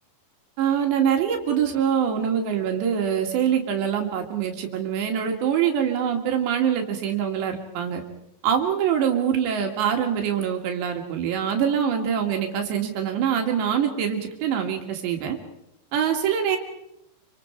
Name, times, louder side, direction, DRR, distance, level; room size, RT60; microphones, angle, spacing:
voice 1, 0.6-8.0 8.4-15.4 15.9-16.6, right 8 dB, 80° right, 3 dB, 4.3 m, -24 dB
27.5 x 26.0 x 4.6 m, 0.78 s
omnidirectional pair, 5.0 m